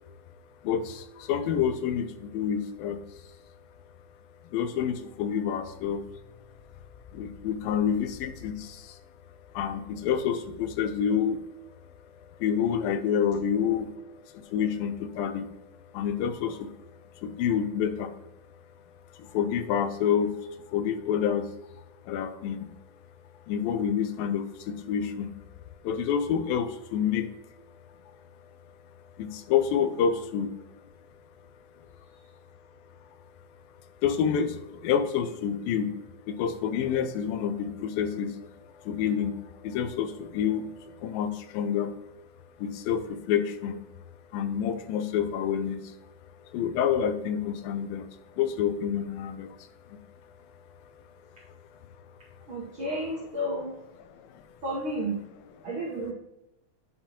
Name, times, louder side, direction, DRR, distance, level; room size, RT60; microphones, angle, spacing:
voice 1, 0.6-3.0 4.5-6.1 7.1-9.0 9.5-11.4 12.2-15.5 15.9-16.7 17.2-18.1 19.2-21.5 22.1-22.7 23.5-25.3 25.8-27.3 29.2-30.5 31.8-31.9 34.0-35.9 36.3-42.0 42.6-43.8 44.3-46.0 46.5-50.0 54.1-54.4, left 8 dB, 85° left, 10 dB, 2.4 m, -28 dB
voice 2, 52.5-53.8 54.6-55.2 55.6-56.1, right 1 dB, 75° right, -5 dB, 1.2 m, -31 dB
9.8 x 5.8 x 2.9 m, 0.92 s
omnidirectional pair, 4.0 m